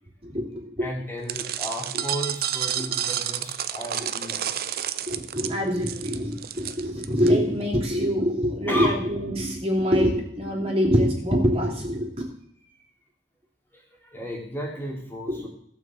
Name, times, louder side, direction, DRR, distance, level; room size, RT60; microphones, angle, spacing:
voice 1, 0.2-0.9 2.8-2.9 4.0-4.1 5.1-12.1 15.3-15.5, equal, 35° right, 0 dB, 3.2 m, -24 dB
voice 2, 0.8-4.5 8.7-8.9 13.7-15.5, equal, 10° left, -2 dB, 2.8 m, -33 dB
sound 1, 1.3-7.3, right 10 dB, 55° right, 0.7 m, -30 dB
16.0 x 6.1 x 7.8 m, 0.68 s
head